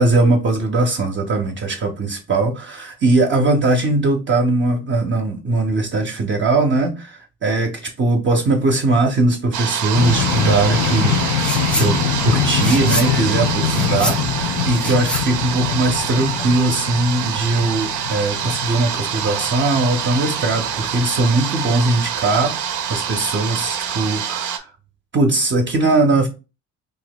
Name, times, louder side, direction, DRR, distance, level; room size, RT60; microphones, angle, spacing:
voice 1, 0.0-11.2 11.8-12.0 12.2-24.7 25.1-26.3, right 2 dB, 40° right, 0.6 m, -19 dB
sound 1, 9.5-24.6, right 8 dB, 80° right, 0.5 m, -26 dB
sound 2, 9.9-21.7, left 7 dB, 65° left, 0.6 m, -24 dB
sound 3, 11.3-11.9 12.2-16.2, equal, 5° left, 0.4 m, -27 dB
2.6 x 2.1 x 3.9 m
cardioid pair, 90°, 30 cm